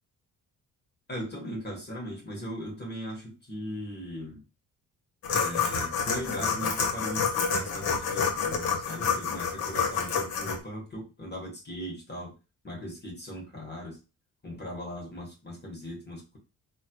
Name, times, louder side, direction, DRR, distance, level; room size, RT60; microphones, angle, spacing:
voice 1, 1.1-4.4 5.3-12.3 12.6-14.0 14.4-16.4, equal, 25° left, -1 dB, 1.3 m, -38 dB
sound 1, 5.2-10.6, left 6 dB, 70° left, 0.9 m, -28 dB
3.1 x 2.3 x 3.0 m, 0.29 s
supercardioid pair, 70°, 37 cm